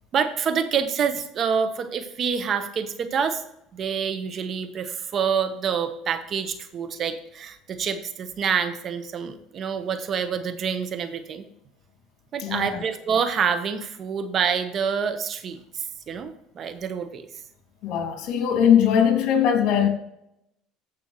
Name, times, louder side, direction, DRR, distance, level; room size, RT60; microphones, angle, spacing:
voice 1, 0.1-3.4 3.7-11.5 12.3-17.3, right 7 dB, 45° right, 1.0 m, -27 dB
voice 2, 12.4-12.8 17.8-19.9, left 8 dB, 60° left, 2.3 m, -20 dB
15.5 x 5.5 x 3.1 m
supercardioid pair, 100°, 0 cm